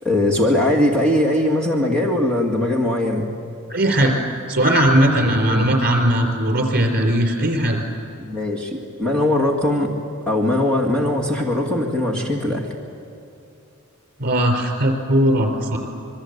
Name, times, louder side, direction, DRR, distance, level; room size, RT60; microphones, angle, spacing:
voice 1, 0.0-3.3 5.4-5.7 8.2-9.9 10.3-12.7, left 1 dB, 5° left, -2 dB, 2.2 m, -20 dB
voice 2, 3.7-7.8 14.2-15.8, right 1 dB, 45° right, 4 dB, 4.0 m, -18 dB
27.0 x 22.0 x 8.1 m, 2.7 s
head